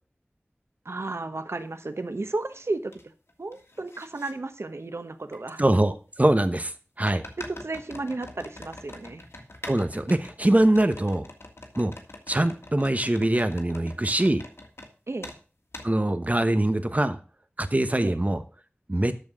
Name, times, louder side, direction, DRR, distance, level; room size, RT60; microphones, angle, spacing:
voice 1, 0.8-3.0 3.4-5.6 7.5-9.2 15.1-15.3 18.0-18.2, right 2 dB, 90° right, 9 dB, 1.0 m, -33 dB
sound 1, 1.6-1.7 2.2-3.0 3.3-4.3 5.3-5.4 7.0-14.9 15.2-15.4 15.7-15.9, left 2 dB, 90° left, 1.9 m, -44 dB
voice 2, 5.6-6.7 7.0-7.2 9.6-11.3 11.7-11.9 12.3-14.4 15.8-17.2 17.6-18.4 18.9-19.1, right 1 dB, 35° right, 10 dB, 1.1 m, -23 dB
13.0 x 4.6 x 6.2 m, 0.36 s
wide cardioid pair, 50°, 4 cm